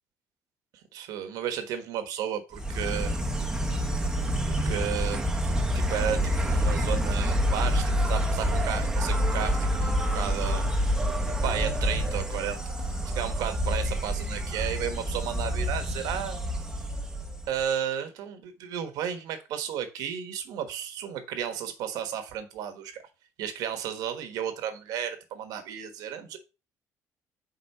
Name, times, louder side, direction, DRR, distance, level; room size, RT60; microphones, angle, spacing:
voice 1, 0.9-3.2 3.7-3.8 4.4-5.2 5.7-10.7 11.3-12.6 13.1-16.4 17.5-23.0 23.4-26.4, right 9 dB, 85° right, 1.3 m, -33 dB
Insect, 2.5-17.6, equal, 10° right, 0.7 m, -27 dB
5.2 x 3.8 x 5.5 m
cardioid pair, 140°, 6 cm